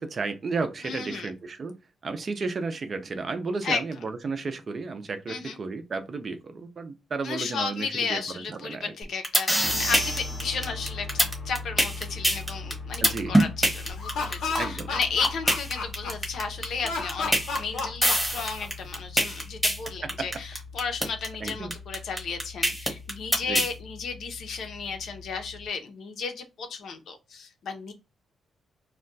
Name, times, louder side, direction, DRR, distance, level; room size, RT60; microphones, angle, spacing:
voice 1, 0.0-1.7 2.0-8.9 13.0-13.3 14.6-14.9 20.0-20.1 21.4-21.7 23.5-23.6, right 4 dB, 35° right, 0.4 m, -33 dB
voice 2, 0.8-1.3 3.6-3.8 5.3-5.6 7.2-27.9, left 5 dB, 65° left, 0.6 m, -33 dB
sound 1, 9.0-23.7, equal, ahead, 1.0 m, -24 dB
sound 2, 9.6-25.7, left 3 dB, 20° left, 0.6 m, -41 dB
Laughter, 13.9-16.4 16.8-18.9, left 4 dB, 90° left, 0.8 m, -32 dB
2.3 x 2.2 x 3.9 m
cardioid pair, 145°, 0 cm